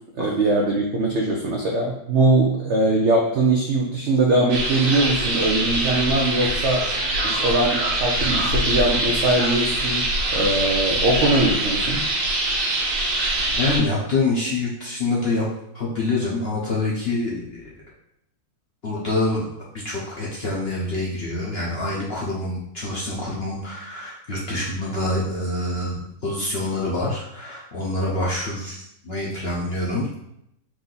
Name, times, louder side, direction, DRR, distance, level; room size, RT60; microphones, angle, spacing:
voice 1, 0.2-6.9 7.2-12.0, right 2 dB, 70° right, -1 dB, 0.6 m, -21 dB
sound 1, 4.5-13.8, right 1 dB, 85° right, 1.7 m, -23 dB
voice 2, 13.6-15.4 15.7-17.7 18.8-19.5 19.8-30.1, left 2 dB, 50° left, -5 dB, 0.8 m, -26 dB
4.6 x 2.7 x 3.8 m, 0.77 s
omnidirectional pair, 1.9 m